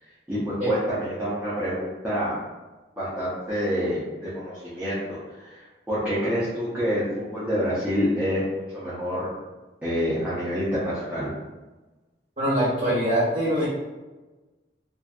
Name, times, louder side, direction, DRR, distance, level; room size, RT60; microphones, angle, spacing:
voice 1, 0.3-2.4 3.0-9.3 9.8-11.3, equal, 10° right, -11 dB, 0.6 m, -27 dB
voice 2, 12.4-13.7, right 1 dB, 40° right, -11 dB, 1.3 m, -23 dB
2.5 x 2.4 x 2.4 m, 1.2 s
head